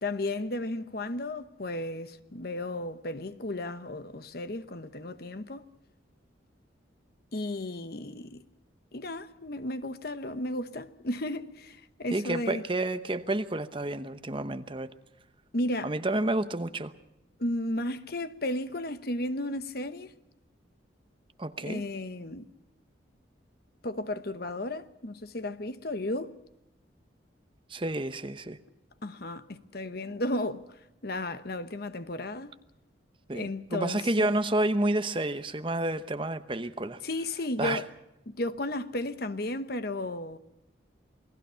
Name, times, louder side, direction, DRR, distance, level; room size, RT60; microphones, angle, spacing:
voice 1, 0.0-5.7 7.3-8.4 8.9-12.6 15.5-15.9 17.4-20.1 21.6-22.5 23.8-26.4 29.0-32.6 33.3-34.3 37.0-37.9 38.3-40.4, left 1 dB, 50° left, 1.0 m, -34 dB
voice 2, 12.1-14.9 15.8-16.9 21.4-21.8 27.7-28.6 33.3-37.0 37.6-37.8, right 2 dB, 25° right, 0.9 m, -30 dB
28.5 x 19.0 x 5.7 m
head